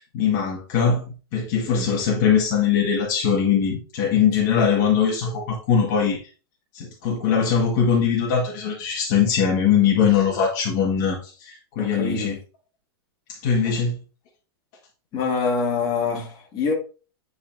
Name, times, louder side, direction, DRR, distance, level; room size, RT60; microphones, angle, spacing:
voice 1, 0.0-6.2 6.7-12.4 13.3-14.0, left 7 dB, 45° left, 1.6 m, -21 dB
voice 2, 11.8-12.3 15.1-16.7, left 4 dB, 30° left, 2.0 m, -25 dB
10.0 x 4.1 x 2.6 m
supercardioid pair, 160°, 13 cm